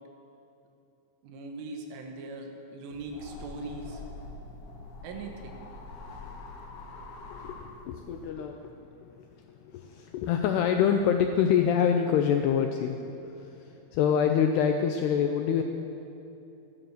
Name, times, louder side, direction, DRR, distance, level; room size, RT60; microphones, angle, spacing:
voice 1, 1.2-4.0 5.0-5.6, right 3 dB, 90° right, 3 dB, 4.0 m, -40 dB
sound 1, 2.9-8.3, left 3 dB, 60° left, 2.9 m, -44 dB
voice 2, 7.3-15.6, left 8 dB, 85° left, 5 dB, 2.4 m, -26 dB
14.5 x 13.5 x 6.6 m, 2.9 s
omnidirectional pair, 5.5 m